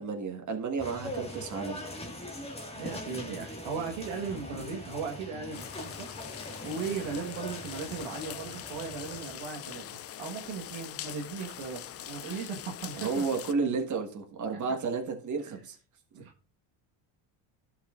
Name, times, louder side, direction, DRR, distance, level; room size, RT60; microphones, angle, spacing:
voice 1, 0.0-1.8 12.9-15.8, right 4 dB, 35° right, 4 dB, 1.7 m, -32 dB
sound 1, 0.8-9.3, left 1 dB, 10° left, 1.7 m, -42 dB
voice 2, 2.7-6.3 6.6-13.3 14.7-14.8 16.1-16.3, right 5 dB, 70° right, 2 dB, 1.5 m, -37 dB
sound 2, 5.5-13.5, left 11 dB, 30° left, 0.4 m, -43 dB
12.0 x 5.7 x 2.5 m, 0.39 s
supercardioid pair, 90°, 50 cm